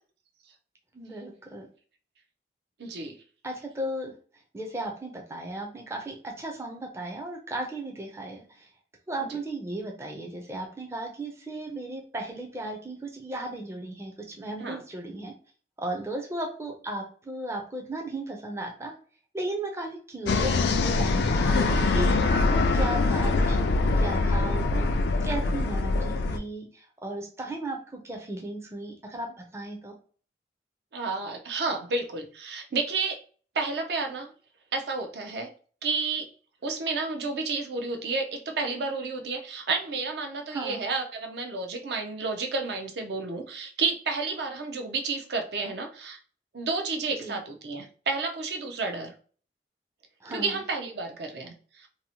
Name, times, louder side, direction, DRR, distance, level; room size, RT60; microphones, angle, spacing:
voice 1, 0.9-1.7 3.4-4.1 4.5-8.7 9.1-15.3 15.8-18.9 19.3-24.9 25.2-29.9 40.5-40.8 47.1-47.4 50.2-50.6, right 1 dB, 15° right, 1 dB, 0.4 m, -36 dB
voice 2, 2.8-3.2 14.6-14.8 30.9-33.2 33.5-34.3 34.7-35.5 35.8-36.3 36.6-46.2 46.5-49.1 50.3-51.9, right 4 dB, 70° right, 4 dB, 0.5 m, -31 dB
sound 1, 20.3-26.4, left 3 dB, 75° left, 0.3 m, -24 dB
2.7 x 2.0 x 2.8 m, 0.42 s
head